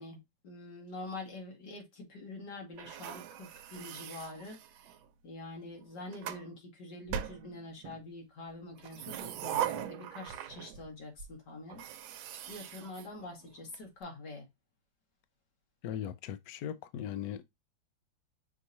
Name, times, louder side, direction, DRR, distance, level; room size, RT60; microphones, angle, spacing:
voice 1, 0.0-4.6 5.2-11.8 12.5-14.5, left 2 dB, 60° left, 2.5 m, -45 dB
sound 1, 2.8-5.1 5.8-6.5 7.1-8.0 8.7-10.9 11.2-11.3 11.7-13.8, right 10 dB, 85° right, 1.4 m, -40 dB
voice 2, 15.8-17.4, left 10 dB, 75° left, 0.8 m, -38 dB
6.0 x 2.9 x 2.6 m
omnidirectional pair, 2.1 m